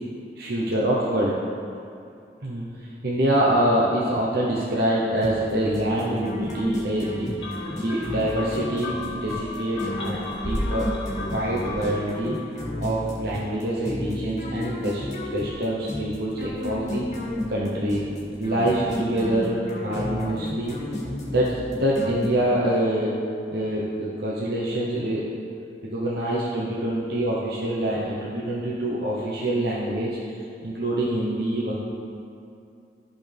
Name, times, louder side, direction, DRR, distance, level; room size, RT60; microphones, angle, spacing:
voice 1, 0.5-1.4 2.4-2.7 3.0-7.3 7.8-10.9 11.2-12.4 12.8-15.0 15.3-17.0 17.5-18.0 18.4-20.8 21.3-23.1 23.5-25.2 25.9-30.2 30.6-31.8, right 1 dB, 60° right, -6 dB, 0.9 m, -25 dB
sound 1, 5.2-22.7, left 1 dB, 40° left, 1.7 m, -33 dB
sound 2, 7.4-12.2, left 2 dB, 75° left, 1.9 m, -33 dB
13.0 x 5.8 x 3.5 m, 2.6 s
head